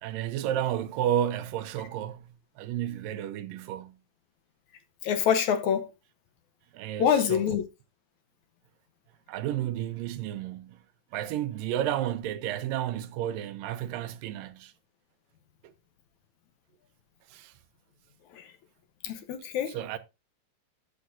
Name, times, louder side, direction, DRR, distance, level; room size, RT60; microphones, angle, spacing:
voice 1, 0.0-4.0 6.7-7.6 9.3-10.8 11.1-14.7 15.6-15.7 17.3-17.5 19.7-20.0, right 11 dB, 80° right, 2.5 m, -32 dB
voice 2, 5.0-5.9 7.0-7.6 18.3-18.5 19.0-19.8, left 8 dB, 70° left, 2.1 m, -25 dB
13.0 x 7.1 x 2.6 m
omnidirectional pair, 4.0 m